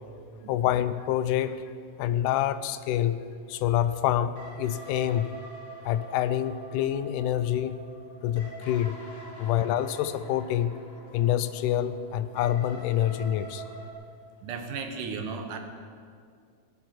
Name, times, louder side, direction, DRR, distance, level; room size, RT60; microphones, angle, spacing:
voice 1, 0.5-1.6 2.0-3.2 3.5-5.3 5.9-7.7 8.2-9.0 9.4-10.8 11.1-13.6, left 11 dB, 80° left, 12 dB, 2.1 m, -27 dB
sound 1, 4.3-13.9, right 2 dB, 30° left, 2.7 m, -45 dB
voice 2, 14.4-15.6, right 5 dB, 75° right, 5 dB, 2.7 m, -35 dB
18.0 x 8.0 x 7.7 m, 2.2 s
omnidirectional pair, 3.8 m